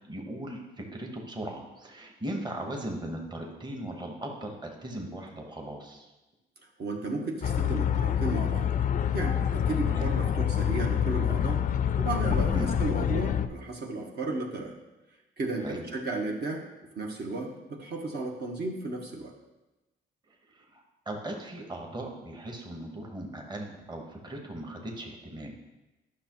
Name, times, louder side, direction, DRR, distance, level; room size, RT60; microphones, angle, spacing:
voice 1, 0.1-6.1 9.8-10.1 12.5-12.7 15.6-15.9 20.5-25.5, right 1 dB, 20° right, 1 dB, 1.2 m, -38 dB
voice 2, 6.8-8.7 9.1-11.6 12.0-14.7 15.4-16.6 17.0-19.3, right 2 dB, 55° right, 0 dB, 1.2 m, -34 dB
sound 1, 7.4-13.5, left 9 dB, 40° left, 0.4 m, -26 dB
9.8 x 6.0 x 3.0 m, 1.1 s
cardioid pair, 90°, 20 cm